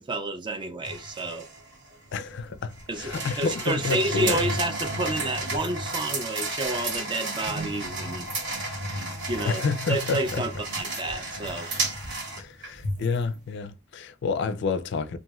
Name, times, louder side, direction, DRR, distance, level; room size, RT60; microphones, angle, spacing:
voice 1, 0.0-1.5 2.9-8.3 9.3-9.6 9.9-11.7, right 2 dB, 20° right, 0.4 m, -30 dB
sound 1, 0.8-13.2, right 2 dB, 55° right, 1.1 m, -32 dB
voice 2, 2.1-4.4 9.4-10.4 12.4-15.2, left 4 dB, 55° left, 0.4 m, -29 dB
3.0 x 2.5 x 2.3 m
head